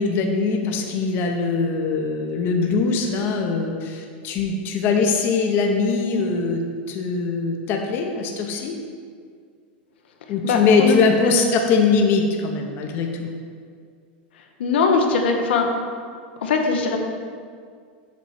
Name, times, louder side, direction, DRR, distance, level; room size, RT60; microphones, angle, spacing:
voice 1, 0.0-6.6 6.9-8.7 10.3-13.3, left 4 dB, 40° left, 3 dB, 0.7 m, -21 dB
voice 2, 10.4-11.0 11.2-11.4 14.6-15.7 16.4-17.0, left 4 dB, 85° left, 3 dB, 0.7 m, -20 dB
6.8 x 3.1 x 4.8 m, 2.1 s
supercardioid pair, 135°, 6 cm